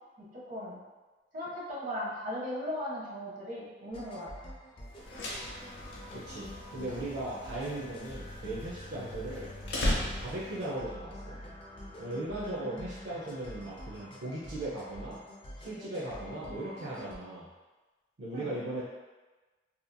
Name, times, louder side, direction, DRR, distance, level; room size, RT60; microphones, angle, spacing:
voice 1, 0.2-0.8 1.3-4.5 12.6-12.9 18.3-18.5, equal, 45° right, -6 dB, 0.9 m, -38 dB
sound 1, 3.9-17.2, equal, 30° left, 0.4 m, -47 dB
sound 2, 4.9-10.7, left 1 dB, 75° left, 0.6 m, -37 dB
voice 2, 6.1-9.5 10.0-11.4 12.0-15.2 15.6-17.5 18.2-18.8, right 1 dB, 75° right, -7 dB, 0.5 m, -38 dB
2.8 x 2.5 x 2.2 m, 1.2 s
head